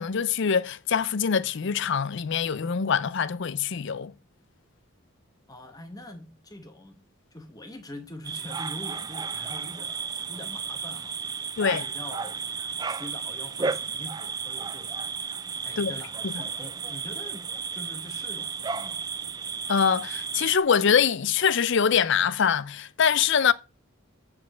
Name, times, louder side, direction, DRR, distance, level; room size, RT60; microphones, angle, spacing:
voice 1, 0.0-4.1 11.6-11.8 15.8-15.9 16.2-16.3 19.7-23.5, left 7 dB, 55° left, 0.5 m, -24 dB
voice 2, 5.5-7.0 7.3-10.0 10.3-12.5 12.9-14.9 15.6-19.0, left 1 dB, 20° left, 1.1 m, -43 dB
sound 1, 8.2-20.6, right 5 dB, 20° right, 0.3 m, -33 dB
8.4 x 4.8 x 6.0 m
head